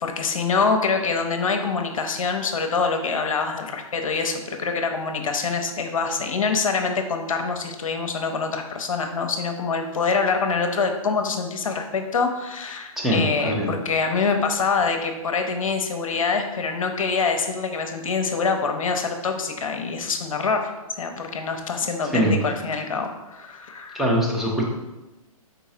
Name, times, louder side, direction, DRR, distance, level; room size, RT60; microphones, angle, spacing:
voice 1, 0.0-20.7 21.0-24.0, left 4 dB, 65° left, 5 dB, 0.6 m, -25 dB
voice 2, 13.0-13.7 22.1-22.4 23.9-24.6, equal, ahead, -3 dB, 0.6 m, -22 dB
4.6 x 3.9 x 2.7 m, 1.0 s
figure-of-eight pair, 130°, 19 cm